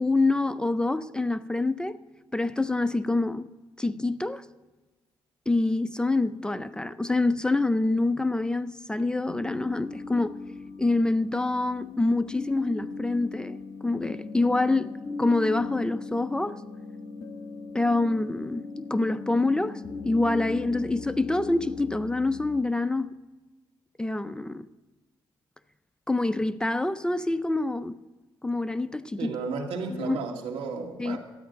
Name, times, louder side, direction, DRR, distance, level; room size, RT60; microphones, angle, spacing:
voice 1, 0.0-2.0 2.3-3.5 3.8-4.5 5.5-10.4 10.8-14.9 15.2-16.6 17.7-23.1 24.0-24.7 26.1-28.0 28.4-29.3 29.9-30.2 31.0-31.2, left 2 dB, 10° left, 0.4 m, -26 dB
sound 1, 9.3-22.6, left 4 dB, 60° left, 1.2 m, -39 dB
voice 2, 29.2-31.2, right 4 dB, 80° right, 2.2 m, -33 dB
13.0 x 9.5 x 5.2 m
cardioid pair, 105°, 10 cm